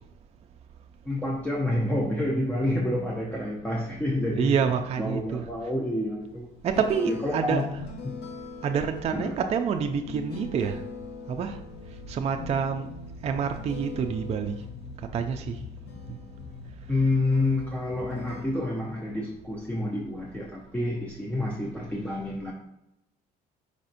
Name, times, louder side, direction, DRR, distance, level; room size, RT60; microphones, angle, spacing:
voice 1, 1.0-4.6 5.0-6.5 6.9-7.6 8.0-8.2 9.1-9.4 16.9-22.5, left 1 dB, 10° left, -2 dB, 0.6 m, -28 dB
voice 2, 4.3-5.5 6.6-7.7 8.6-10.8 11.3-11.6 12.1-12.9 13.2-14.6 15.1-15.6 16.1-16.2, right 7 dB, 40° right, 5 dB, 0.4 m, -27 dB
sound 1, 6.2-18.4, left 4 dB, 75° left, 0.8 m, -42 dB
4.9 x 4.1 x 2.5 m, 0.86 s
cardioid pair, 110°, 17 cm